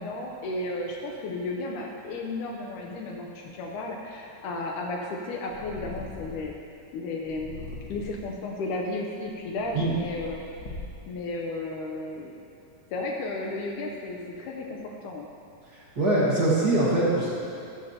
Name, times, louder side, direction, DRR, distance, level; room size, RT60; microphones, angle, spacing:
voice 1, 0.0-6.6 6.9-10.5 11.1-12.4 12.9-15.3, left 2 dB, 75° left, 0 dB, 2.1 m, -33 dB
Purr, 5.5-6.6 7.2-8.3 9.0-11.1, left 2 dB, 55° left, 1.3 m, -41 dB
voice 2, 15.7-17.3, right 2 dB, 40° right, -7 dB, 1.5 m, -23 dB
13.5 x 13.0 x 2.8 m, 2.6 s
omnidirectional pair, 3.9 m